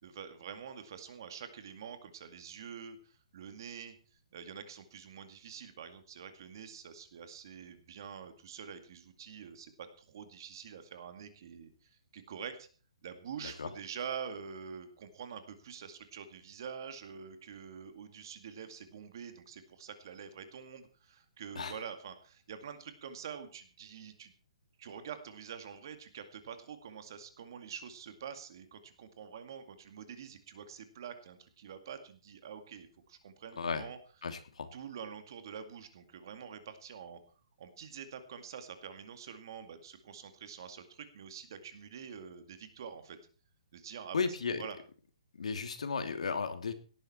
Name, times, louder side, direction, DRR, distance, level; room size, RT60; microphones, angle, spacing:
voice 1, 0.0-4.0 4.3-12.7 13.0-24.3 24.8-34.0 34.7-37.2 37.6-43.2 43.7-44.2 44.6-44.8, right 7 dB, 35° right, 9 dB, 2.2 m, -46 dB
voice 2, 33.6-33.9 34.2-34.7 44.1-44.6 45.3-46.7, left 5 dB, 75° left, 8 dB, 2.9 m, -35 dB
18.0 x 12.0 x 4.4 m, 0.38 s
hypercardioid pair, 180°, 4 cm